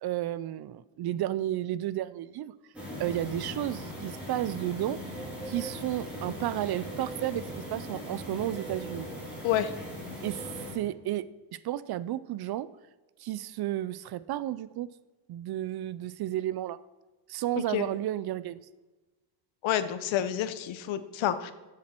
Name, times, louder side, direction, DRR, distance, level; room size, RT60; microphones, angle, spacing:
voice 1, 0.0-2.5 3.0-5.0 5.5-9.1 10.2-10.4 10.7-11.3 11.5-12.7 13.2-14.9 15.3-16.8 17.3-18.6, right 13 dB, 55° right, 17 dB, 0.5 m, -32 dB
sound 1, 2.7-10.7, equal, 5° right, 3.8 m, -39 dB
voice 2, 19.6-21.5, left 11 dB, 85° left, 12 dB, 1.0 m, -28 dB
13.5 x 7.6 x 4.4 m, 1.2 s
cardioid pair, 160°, 45 cm